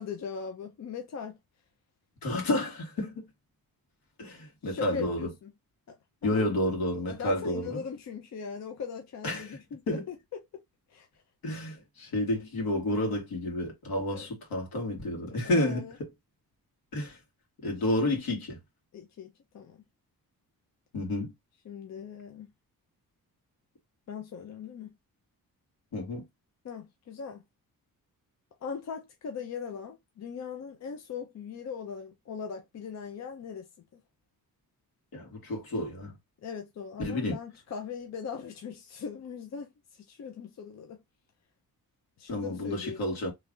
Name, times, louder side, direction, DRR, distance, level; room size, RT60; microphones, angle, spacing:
voice 1, 0.0-1.4 4.6-5.5 5.9-6.0 6.2-6.5 7.1-10.6 10.9-11.1 14.1-14.3 15.3-16.0 18.9-19.8 21.7-22.5 24.1-24.9 26.6-27.4 28.6-33.7 33.9-34.0 36.4-41.0 42.2-43.1, left 6 dB, 50° left, 0.6 m, -40 dB
voice 2, 2.2-3.3 4.2-5.3 6.2-7.8 9.2-9.6 9.9-10.0 11.4-15.9 16.9-17.2 17.6-18.6 20.9-21.3 25.9-26.2 35.1-36.1 37.0-37.3 42.3-43.3, left 1 dB, 80° left, 1.9 m, -30 dB
3.2 x 2.4 x 3.7 m
wide cardioid pair, 155°, 36 cm